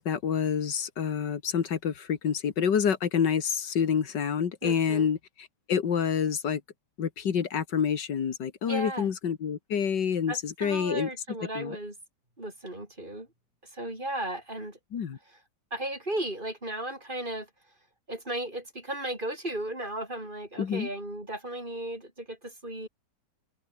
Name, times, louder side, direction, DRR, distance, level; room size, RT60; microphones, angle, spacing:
voice 1, 0.0-5.2 5.7-6.6 7.0-11.1 11.6-11.8 14.9-15.2 20.6-20.9, left 7 dB, 85° left, 2.3 m, -27 dB
voice 2, 4.6-5.1 8.7-9.1 10.3-12.0 12.4-13.3 13.6-14.8 15.3-15.4 15.7-17.5 18.1-22.9, right 1 dB, 30° right, 5.5 m, -35 dB
omnidirectional pair, 1.8 m